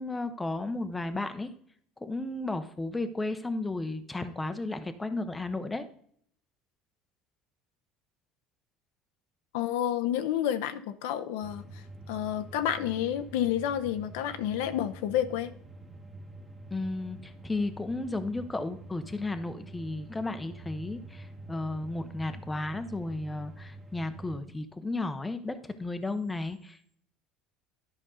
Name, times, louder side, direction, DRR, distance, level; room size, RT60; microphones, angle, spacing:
voice 1, 0.0-1.5 2.0-5.8 16.7-27.0, left 2 dB, 10° left, 9 dB, 0.6 m, -34 dB
voice 2, 9.5-11.6 12.1-15.5, left 10 dB, 90° left, 8 dB, 0.6 m, -30 dB
sound 1, 11.4-24.4, right 1 dB, 10° right, 1.1 m, -47 dB
11.5 x 5.3 x 3.7 m, 0.64 s
cardioid pair, 140°, 0 cm